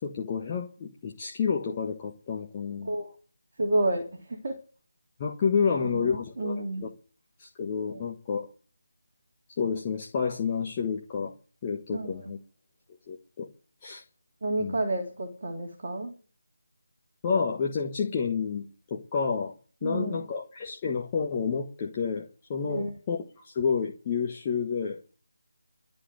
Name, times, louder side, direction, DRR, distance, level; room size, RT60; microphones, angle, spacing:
voice 1, 0.0-2.9 5.2-6.9 7.4-8.5 9.6-11.3 11.6-12.4 13.1-13.5 13.8-14.0 14.6-14.7 17.2-19.5 19.8-25.0, left 6 dB, 25° left, 0 dB, 1.4 m, -30 dB
voice 2, 3.6-4.6 5.8-6.9 7.9-8.0 11.9-12.1 14.4-16.1 19.8-20.2 22.6-22.9, right 1 dB, 40° right, 2 dB, 3.4 m, -30 dB
12.5 x 7.7 x 9.4 m, 0.40 s
figure-of-eight pair, 160°, 0 cm